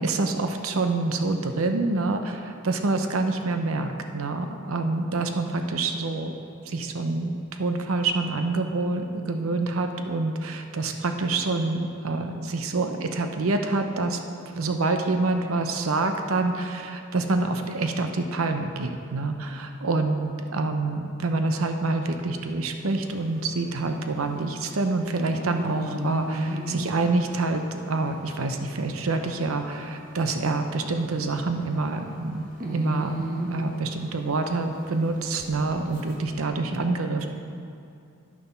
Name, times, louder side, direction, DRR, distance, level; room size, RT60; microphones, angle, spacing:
voice 1, 0.0-6.3 6.7-14.2 14.5-37.3, right 3 dB, 90° right, 6 dB, 0.7 m, -27 dB
sound 1, 22.9-36.3, right 1 dB, 40° right, 1.2 m, -37 dB
10.0 x 7.0 x 5.7 m, 2.5 s
head